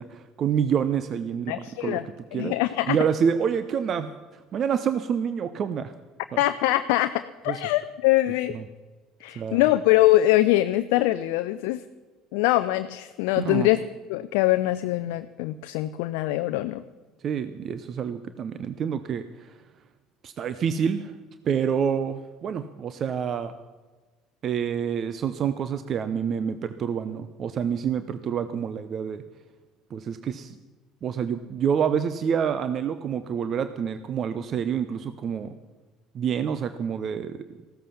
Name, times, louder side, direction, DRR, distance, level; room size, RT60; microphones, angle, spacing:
voice 1, 0.0-2.0 2.3-2.5 2.9-5.9 6.3-6.4 7.5-7.6 8.5-8.6 9.4-9.6 13.4-13.7 17.2-19.5 20.2-21.1 21.4-23.5 24.4-29.2 29.9-30.6 31.0-35.5 36.1-37.4, right 7 dB, 45° right, 12 dB, 0.7 m, -27 dB
voice 2, 1.5-2.0 2.3-3.0 6.4-8.6 9.2-11.8 12.3-13.8 14.1-16.8, left 16 dB, 70° left, 10 dB, 0.5 m, -23 dB
15.5 x 13.5 x 5.7 m, 1.3 s
hypercardioid pair, 60°, 0 cm